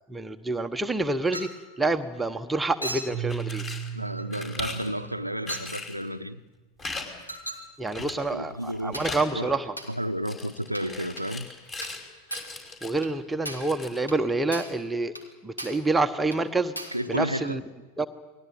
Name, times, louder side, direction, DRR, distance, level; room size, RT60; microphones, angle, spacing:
voice 1, 0.1-1.5 1.8-3.6 7.8-9.8 12.8-15.1 15.4-16.7 17.1-17.6 18.0-18.1, right 3 dB, 10° right, 1.0 m, -27 dB
Chink clink, 1.3-1.6 2.8-3.2 4.2-4.4 5.5-5.8 7.3-7.7 8.9-9.2 9.8-10.0 10.8-10.9 11.2-11.3 11.8-12.0 12.3-12.6 13.0-13.2 13.5-13.7 14.1-14.2 14.5-14.8 15.2-15.3 15.6-15.9 16.3-16.4 16.8-17.0, right 1 dB, 85° left, 3.0 m, -37 dB
sound 1, 3.1-3.9 4.3-4.9 5.5-6.0 6.8-7.1 7.3-7.4 7.9-8.3 8.6-9.3 10.3-12.0 12.3-13.0 13.5-14.1, left 3 dB, 25° left, 5.3 m, -38 dB
Keyboard (musical), 3.1-6.2, right 9 dB, 35° right, 1.0 m, -37 dB
voice 2, 3.9-6.4 8.3-9.0 9.3-9.5 9.9-11.5 16.9-17.6, equal, 90° right, 0.8 m, -32 dB
29.0 x 20.0 x 8.8 m
figure-of-eight pair, 90°, 0 cm